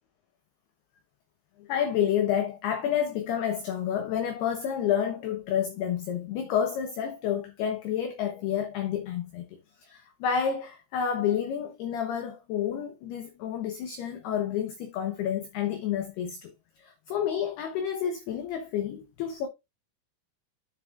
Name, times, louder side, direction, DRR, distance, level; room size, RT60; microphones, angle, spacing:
voice 1, 1.6-9.5 9.8-16.5 16.8-19.5, left 9 dB, 90° left, 2.2 m, -29 dB
10.0 x 7.1 x 2.3 m
omnidirectional pair, 6.0 m